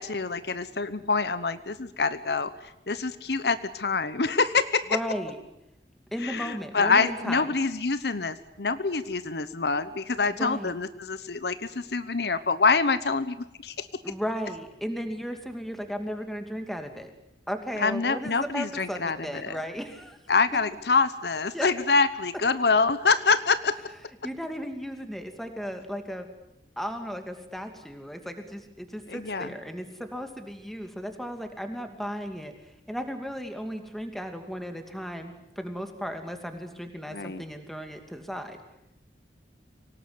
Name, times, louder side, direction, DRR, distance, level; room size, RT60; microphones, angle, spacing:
voice 1, 0.0-2.5 2.9-4.9 6.2-13.4 13.6-13.9 17.8-19.6 20.3-23.8 29.1-29.5 37.1-37.4, left 4 dB, 65° left, 13 dB, 1.0 m, -26 dB
voice 2, 4.9-5.4 6.1-7.5 10.3-10.7 14.0-17.1 17.5-20.2 21.5-21.7 24.2-26.3 26.8-32.5 32.9-38.6, equal, ahead, 6 dB, 2.6 m, -35 dB
25.0 x 18.5 x 9.6 m, 0.86 s
head